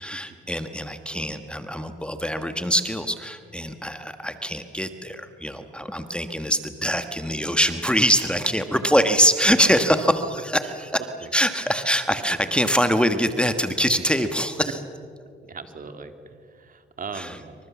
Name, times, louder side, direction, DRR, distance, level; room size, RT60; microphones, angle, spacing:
voice 1, 0.0-10.9 11.3-14.7 17.1-17.3, equal, 5° left, 8 dB, 1.5 m, -23 dB
voice 2, 15.4-17.6, right 5 dB, 45° right, 7 dB, 2.5 m, -39 dB
27.0 x 24.5 x 7.3 m, 2.2 s
cardioid pair, 90°, 20 cm